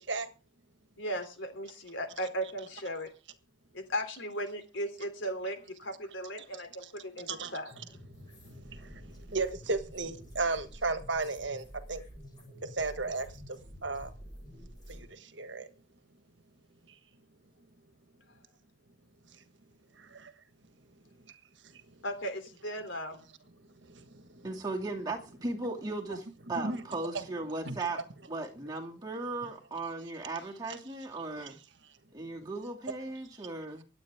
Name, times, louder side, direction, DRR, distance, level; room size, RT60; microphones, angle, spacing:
voice 1, 1.0-3.1 3.7-7.7 22.0-23.2 31.4-31.5, equal, 75° left, 8 dB, 3.1 m, -37 dB
voice 2, 7.3-7.6 8.1-12.0 12.6-14.1 14.9-15.7 20.0-20.3 21.7-21.8 23.9-24.5 26.1-26.2 26.6-26.8 27.1-27.2 27.6-27.8 32.4-32.5, right 3 dB, 65° right, 10 dB, 1.4 m, -35 dB
sound 1, 7.7-15.0, equal, 20° left, 7.2 m, -49 dB
voice 3, 24.4-28.0 28.3-31.6 32.1-33.8, right 2 dB, 20° right, 0 dB, 2.4 m, -37 dB
24.5 x 8.8 x 3.6 m, 0.34 s
head